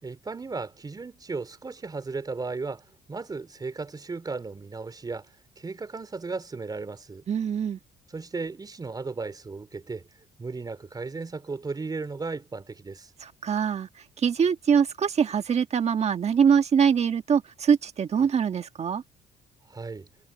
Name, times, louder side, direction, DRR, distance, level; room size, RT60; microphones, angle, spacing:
voice 1, 0.0-7.2 8.1-10.1 10.4-13.1 19.7-20.1, right 4 dB, 25° right, 4.1 m, -35 dB
voice 2, 7.3-7.8 13.2-13.9 14.2-19.0, right 7 dB, 40° right, 1.6 m, -23 dB
cardioid pair, 110°, 17 cm